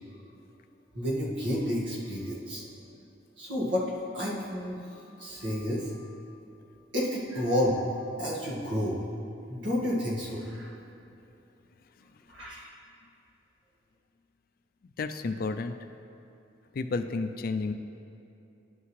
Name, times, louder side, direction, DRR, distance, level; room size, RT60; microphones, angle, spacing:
voice 1, 0.9-2.6 3.4-3.8 4.1-6.1 6.9-7.8 8.2-9.0 9.5-10.7 12.3-12.7, equal, 75° right, -6 dB, 1.8 m, -30 dB
voice 2, 14.8-15.8 16.7-17.7, left 3 dB, 50° left, 9 dB, 0.3 m, -32 dB
11.0 x 5.8 x 3.2 m, 2.8 s
head